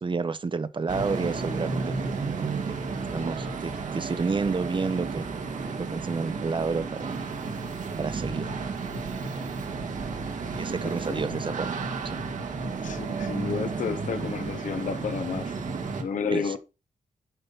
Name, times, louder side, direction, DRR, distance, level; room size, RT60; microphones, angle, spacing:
voice 1, 0.0-2.2 2.9-5.2 5.8-7.1 8.0-8.8 10.6-11.8 12.0-12.2 16.3-16.6, right 4 dB, 40° right, 0.9 m, -30 dB
sound 1, 0.9-16.0, right 4 dB, 75° right, 1.7 m, -32 dB
voice 2, 10.6-11.2 12.8-15.5 16.0-16.6, left 6 dB, 75° left, 1.3 m, -31 dB
9.3 x 5.5 x 4.1 m
cardioid pair, 75°, 13 cm